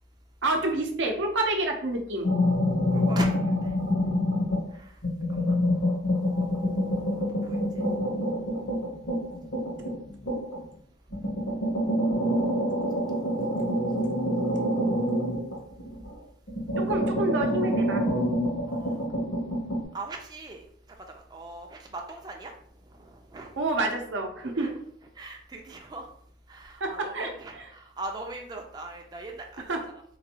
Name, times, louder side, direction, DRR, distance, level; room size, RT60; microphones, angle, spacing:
voice 1, 0.4-2.3 16.8-18.0 23.6-24.7 26.8-27.7 29.6-29.8, right 2 dB, 85° right, 2 dB, 0.7 m, -28 dB
sound 1, 2.2-4.7 5.0-10.6 11.1-16.1 16.5-19.8, equal, 90° left, 1.4 m, -27 dB
voice 2, 2.9-3.4 5.5-5.6 6.2-7.2 7.4-7.6 18.7-19.0 19.9-20.6 21.3-21.8 22.1-22.5 23.3-23.5 24.6-24.7 25.2-26.1 26.5-29.7, right 2 dB, 20° right, 2 dB, 0.3 m, -40 dB
3.9 x 2.6 x 2.7 m, 0.65 s
head